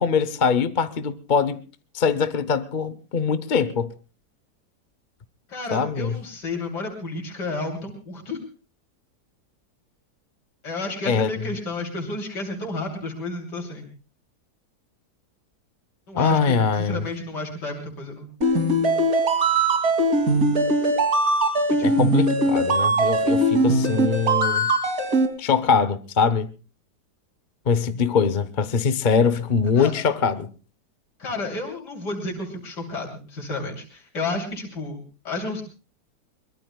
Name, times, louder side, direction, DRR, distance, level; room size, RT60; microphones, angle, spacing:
voice 1, 0.0-1.6 1.9-3.9 5.7-6.2 11.0-11.5 16.1-17.0 21.8-24.7 25.4-26.5 27.7-30.5, left 5 dB, 40° left, 0.8 m, -22 dB
voice 2, 5.5-8.4 10.6-13.9 16.1-18.3 21.8-22.2 29.7-29.9 31.2-35.6, left 2 dB, 85° left, 3.7 m, -31 dB
sound 1, 18.4-25.3, right 1 dB, 55° right, 3.2 m, -20 dB
23.0 x 21.5 x 2.3 m
omnidirectional pair, 1.8 m